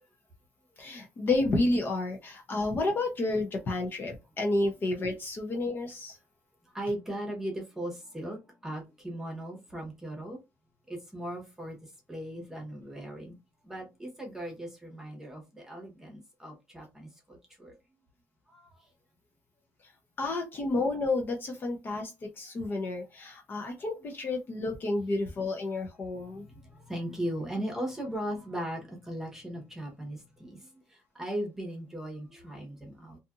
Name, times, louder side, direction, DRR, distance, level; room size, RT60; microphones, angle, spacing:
voice 1, 0.8-6.2 20.2-26.5, left 2 dB, 35° left, 2 dB, 0.6 m, -30 dB
voice 2, 6.7-10.4 10.9-11.8 12.1-13.4 13.6-17.7 18.5-18.6 26.2-33.2, right 1 dB, 5° right, 0 dB, 1.0 m, -38 dB
2.7 x 2.5 x 2.4 m, 0.24 s
cardioid pair, 140°, 6 cm